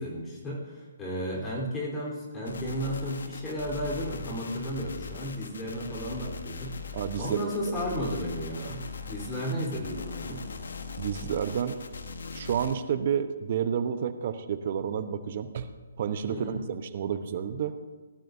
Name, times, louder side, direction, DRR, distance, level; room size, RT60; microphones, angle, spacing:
voice 1, 0.0-10.4 16.3-16.6, equal, 15° left, -4 dB, 3.9 m, -34 dB
sound 1, 2.5-12.7, left 4 dB, 70° left, 1.3 m, -40 dB
voice 2, 6.9-7.8 11.0-11.8 12.3-15.7 16.0-17.7, right 8 dB, 45° right, 10 dB, 1.0 m, -30 dB
18.0 x 12.0 x 2.8 m, 1.4 s
figure-of-eight pair, 140°, 0 cm